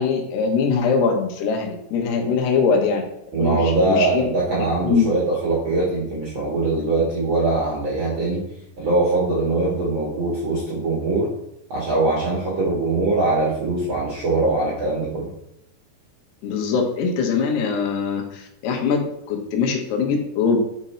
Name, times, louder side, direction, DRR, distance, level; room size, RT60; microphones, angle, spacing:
voice 1, 0.0-3.0 3.4-4.3 4.8-5.1 16.4-20.6, left 5 dB, 85° left, 2 dB, 3.3 m, -22 dB
voice 2, 3.3-8.4 8.8-11.3 11.7-15.3, right 2 dB, 50° right, -5 dB, 1.6 m, -22 dB
8.0 x 5.3 x 4.3 m, 0.80 s
omnidirectional pair, 4.6 m